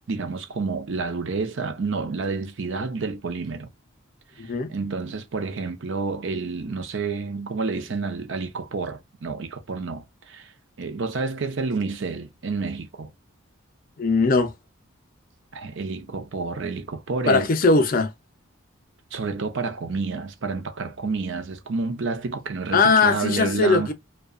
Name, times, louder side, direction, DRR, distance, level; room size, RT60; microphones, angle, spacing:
voice 1, 0.1-3.7 4.4-10.5 10.8-13.1 15.5-17.5 19.1-23.9, right 4 dB, 60° right, 0.5 m, -29 dB
voice 2, 4.4-4.7 14.0-14.5 17.3-18.1 22.7-23.9, left 3 dB, 40° left, 0.4 m, -19 dB
2.6 x 2.2 x 2.3 m
head